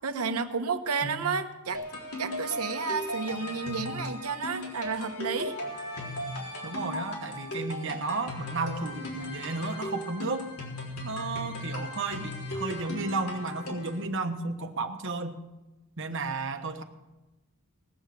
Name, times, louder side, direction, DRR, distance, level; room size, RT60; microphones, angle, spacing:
voice 1, 0.0-5.5, right 5 dB, 85° right, 8 dB, 1.1 m, -31 dB
voice 2, 1.0-1.4 6.6-10.5 11.0-15.4 16.0-16.8, right 3 dB, 55° right, 6 dB, 1.2 m, -33 dB
sound 1, 1.7-14.0, left 1 dB, 85° left, 3.9 m, -37 dB
19.5 x 7.2 x 6.8 m, 1.1 s
head